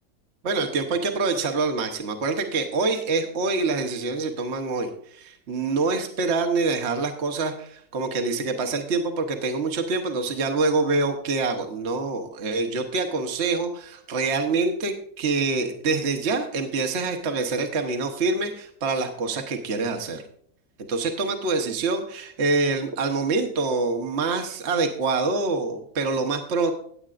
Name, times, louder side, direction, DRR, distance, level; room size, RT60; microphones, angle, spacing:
voice 1, 0.4-20.2 20.9-26.7, right 3 dB, 50° right, 5 dB, 1.3 m, -26 dB
17.5 x 8.0 x 2.5 m, 0.64 s
omnidirectional pair, 1.6 m